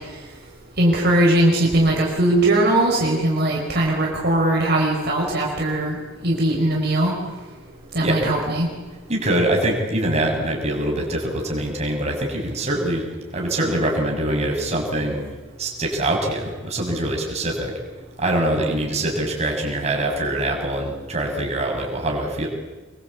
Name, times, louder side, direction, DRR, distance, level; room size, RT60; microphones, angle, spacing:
voice 1, 0.8-7.1 7.9-8.7, right 1 dB, 55° right, -2 dB, 5.0 m, -20 dB
voice 2, 8.0-8.3 9.1-13.1 13.3-15.2 15.6-17.7 18.2-22.5, right 1 dB, 35° right, 0 dB, 6.4 m, -24 dB
27.0 x 23.0 x 8.4 m, 1.2 s
head